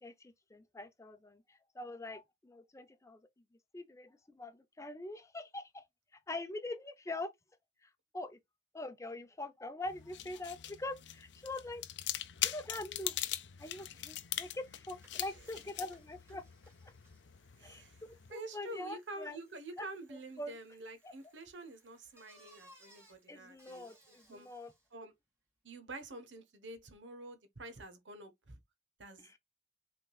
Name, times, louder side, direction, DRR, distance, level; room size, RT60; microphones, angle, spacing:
voice 1, 0.0-3.2 3.7-5.8 6.3-7.3 7.8-8.4 8.7-11.8 12.4-13.2 13.6-16.4 17.6-17.8 18.3-19.4 19.8-19.9 20.1-20.6 21.0-21.1 23.3-24.7 29.2-29.4, left 2 dB, 15° left, 0.6 m, -44 dB
sound 1, 9.9-18.3, left 13 dB, 75° left, 0.5 m, -42 dB
Bicycle, 14.3-24.9, right 1 dB, 15° right, 2.7 m, -66 dB
voice 2, 17.6-18.0 18.3-24.5 24.9-25.1 25.6-28.6 29.0-29.4, right 2 dB, 85° right, 1.2 m, -48 dB
5.7 x 3.7 x 2.4 m
head